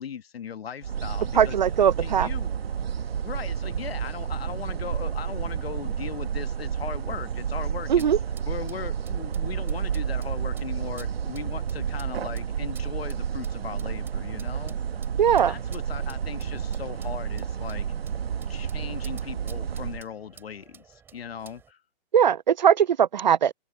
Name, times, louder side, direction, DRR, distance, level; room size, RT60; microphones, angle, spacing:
voice 1, 0.0-1.6 2.0-2.5 3.2-8.1 8.4-14.8 15.4-17.9 18.5-21.8, left 7 dB, 90° left, 1.5 m, -38 dB
sound 1, 0.8-20.0, right 8 dB, 90° right, 1.5 m, -30 dB
voice 2, 1.4-2.3 7.9-8.2 15.2-15.5 22.1-23.5, right 8 dB, 50° right, 0.5 m, -20 dB
sound 2, 7.9-21.7, right 7 dB, 5° right, 4.1 m, -54 dB
hypercardioid pair, 175°, 30 cm